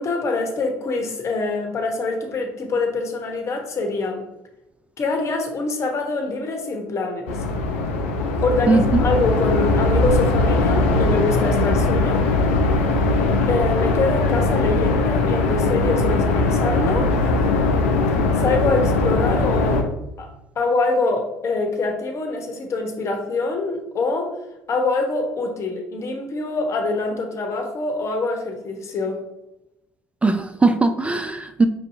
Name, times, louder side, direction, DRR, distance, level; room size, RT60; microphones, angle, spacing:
voice 1, 0.0-4.3 5.0-7.4 8.4-12.2 13.5-17.1 18.4-19.9 20.2-20.3 20.6-24.4 24.7-29.2, left 3 dB, 45° left, 3 dB, 1.0 m, -24 dB
sound 1, 7.3-19.8, left 2 dB, 85° left, 0.5 m, -20 dB
voice 2, 8.7-9.0 30.2-31.7, right 3 dB, 20° right, 8 dB, 0.3 m, -19 dB
5.3 x 2.7 x 2.6 m, 0.91 s
hypercardioid pair, 65°, 7 cm